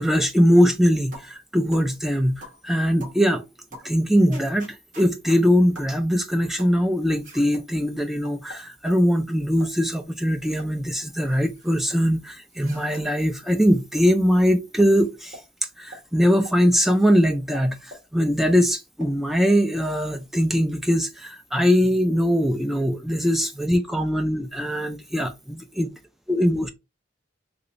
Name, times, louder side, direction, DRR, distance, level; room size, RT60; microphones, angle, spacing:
voice 1, 0.0-3.4 3.8-15.4 15.8-25.9 26.3-26.7, equal, ahead, 0.3 m, -21 dB
sound 1, 1.1-1.3 1.7-1.9 2.4-2.6 3.0-3.2 3.7-3.9 4.3-5.4 5.7-5.9 6.6-6.8 7.2-7.6 8.2-9.0 9.5-9.7 10.2-10.7 11.0-12.0 12.5-13.0 13.5-13.6 13.9-14.0 14.3-14.4 14.8-14.9 15.3-15.5 15.9-16.0 16.4-16.6 16.9-17.0 17.5-18.1 18.5-18.6 19.0-19.1 19.4-19.6, equal, 40° right, 1.3 m, -44 dB
3.0 x 3.0 x 2.5 m
head